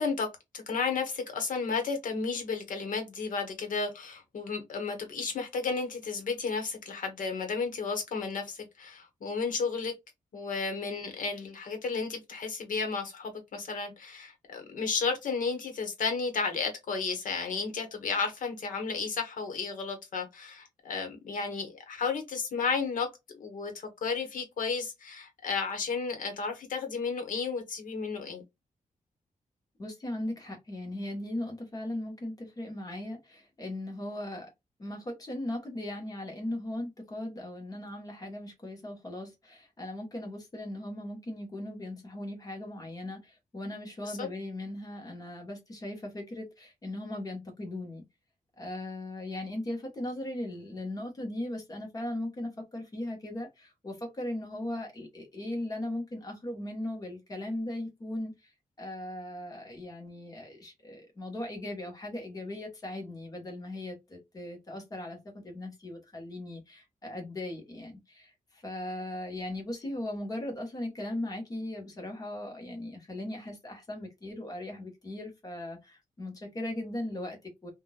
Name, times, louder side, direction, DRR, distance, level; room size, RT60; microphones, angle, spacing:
voice 1, 0.0-9.9 10.3-28.4 44.0-44.3, left 4 dB, 75° left, 1.2 m, -33 dB
voice 2, 29.8-34.5 34.8-48.0 48.6-58.5 58.8-77.7, left 1 dB, 25° left, 1.2 m, -38 dB
3.7 x 2.5 x 2.3 m
wide cardioid pair, 180°, 14 cm